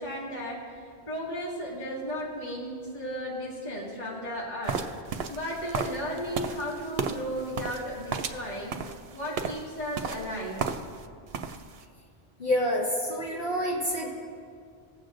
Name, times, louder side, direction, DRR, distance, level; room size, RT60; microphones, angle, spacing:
voice 1, 0.0-4.8 5.3-8.7 9.1-10.7, equal, 40° left, -6 dB, 2.1 m, -35 dB
sound 1, 4.7-11.1 11.3-11.8, right 5 dB, 75° right, 0.8 m, -34 dB
voice 2, 12.4-14.1, equal, 60° left, -6 dB, 2.2 m, -27 dB
21.5 x 7.7 x 2.5 m, 2.2 s
omnidirectional pair, 1.1 m